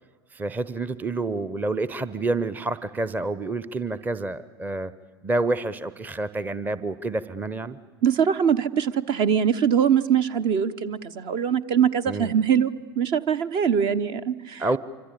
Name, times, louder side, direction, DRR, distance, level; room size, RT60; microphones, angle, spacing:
voice 1, 0.3-4.9 5.2-7.8 12.1-12.3 14.6-14.8, right 2 dB, 15° right, 16 dB, 0.9 m, -28 dB
voice 2, 8.0-14.7, right 8 dB, 40° right, 14 dB, 1.1 m, -22 dB
26.0 x 25.5 x 8.5 m, 1.5 s
figure-of-eight pair, 85°, 13 cm